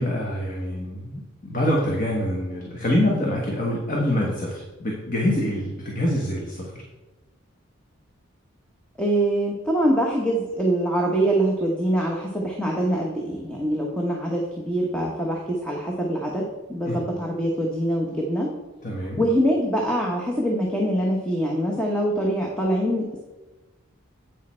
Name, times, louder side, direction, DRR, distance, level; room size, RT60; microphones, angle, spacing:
voice 1, 0.0-6.7 16.8-17.0 18.8-19.2, left 1 dB, 40° left, -2 dB, 1.2 m, -25 dB
voice 2, 9.0-18.5 19.2-23.2, right 1 dB, 5° left, -1 dB, 0.9 m, -24 dB
8.5 x 6.4 x 4.3 m, 1.1 s
head